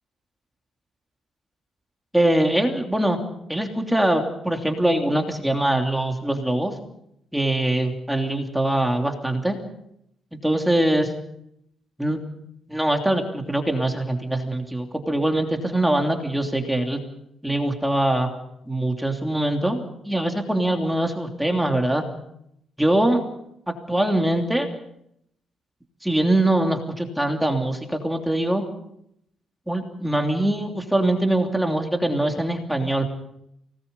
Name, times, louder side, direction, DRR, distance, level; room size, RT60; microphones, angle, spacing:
voice 1, 2.1-3.2 3.5-6.7 7.3-9.6 10.4-11.1 12.0-12.2 12.7-17.0 17.4-18.3 18.7-22.0 22.8-23.2 23.7-24.7 26.0-28.6 29.7-33.1, right 1 dB, 5° right, 3 dB, 3.1 m, -23 dB
29.0 x 19.0 x 5.6 m, 0.76 s
cardioid pair, 90°, 0 cm